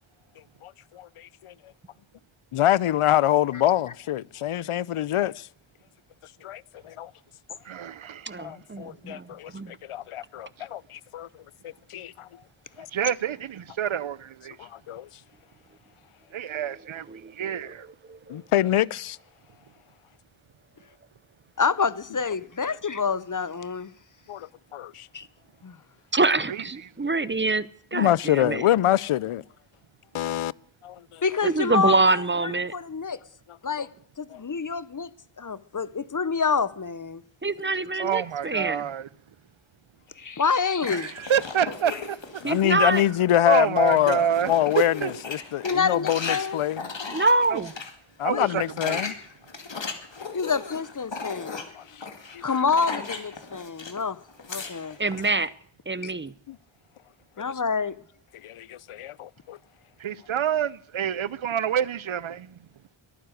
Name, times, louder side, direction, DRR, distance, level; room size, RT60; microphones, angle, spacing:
voice 1, 0.6-1.5 2.5-5.5 6.4-7.1 8.4-11.3 11.6-12.3 12.8-12.9 14.6-15.1 18.3-19.2 24.3-25.1 27.9-29.4 30.1-30.5 30.8-31.2 33.8-33.9 34.3-34.4 42.4-46.9 48.2-49.2 51.8-52.4 56.5-56.6 58.4-59.6, left 12 dB, 85° left, 0.6 m, -25 dB
voice 2, 7.6-8.5 12.9-14.6 16.3-17.1 17.3-17.9 26.5-26.6 27.0-27.1 38.0-39.1 40.9-42.4 43.4-44.5 45.0-45.1 47.5-47.7 48.2-49.0 60.0-62.6, right 9 dB, 70° right, 0.7 m, -28 dB
voice 3, 8.3-9.8 17.1-17.7 18.1-18.4 26.1-28.6 31.4-32.7 37.4-38.8 42.4-43.0 47.1-47.7 55.0-55.5 55.9-56.3, right 3 dB, 25° right, 0.6 m, -25 dB
voice 4, 21.6-23.9 25.1-25.3 25.6-25.8 31.2-33.2 33.6-33.9 34.2-35.1 35.4-37.2 40.2-41.1 45.6-46.6 48.3-48.5 50.3-51.6 52.4-54.2 54.5-55.0 56.0-56.1 57.4-57.9, left 5 dB, 40° left, 0.8 m, -27 dB
sound 1, 40.8-43.1 43.5-47.9 48.5-54.0 54.3-55.4, left 4 dB, 60° left, 2.4 m, -37 dB
22.5 x 9.4 x 6.5 m
wide cardioid pair, 90°, 50 cm